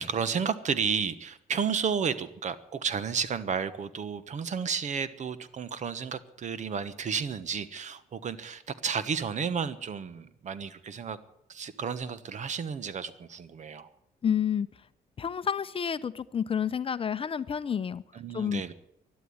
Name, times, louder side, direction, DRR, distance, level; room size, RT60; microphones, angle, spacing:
voice 1, 0.0-11.2 11.5-13.9 18.1-18.7, right 6 dB, 50° right, 14 dB, 1.2 m, -32 dB
voice 2, 14.2-14.7 15.2-18.0 18.3-18.6, left 8 dB, 35° left, 14 dB, 0.7 m, -29 dB
12.5 x 11.5 x 9.6 m, 0.80 s
cardioid pair, 95°, 16 cm